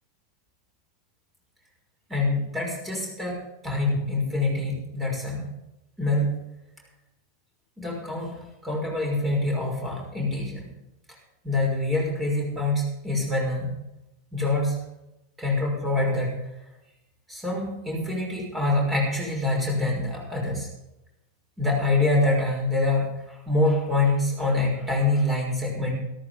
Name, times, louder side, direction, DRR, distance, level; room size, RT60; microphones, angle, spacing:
voice 1, 2.1-3.4 3.6-5.4 6.0-6.3 7.8-8.3 8.6-10.7 11.4-13.7 14.3-14.8 15.4-16.3 17.3-20.7 21.6-25.9, left 2 dB, 10° right, -1 dB, 5.9 m, -25 dB
14.0 x 13.5 x 5.3 m, 0.91 s
figure-of-eight pair, 90°, 0 cm